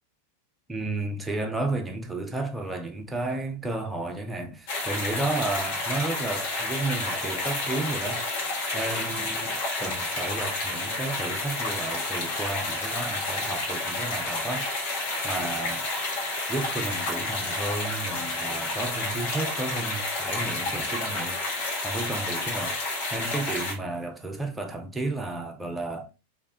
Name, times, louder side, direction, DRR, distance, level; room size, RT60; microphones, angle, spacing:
voice 1, 0.7-8.2 8.7-14.7 15.2-15.9 16.5-22.8 23.1-26.1, right 2 dB, 10° right, 0.7 m, -32 dB
sound 1, 4.7-23.7, left 2 dB, 45° left, 1.5 m, -30 dB
3.4 x 2.7 x 3.4 m
figure-of-eight pair, 90°, 0 cm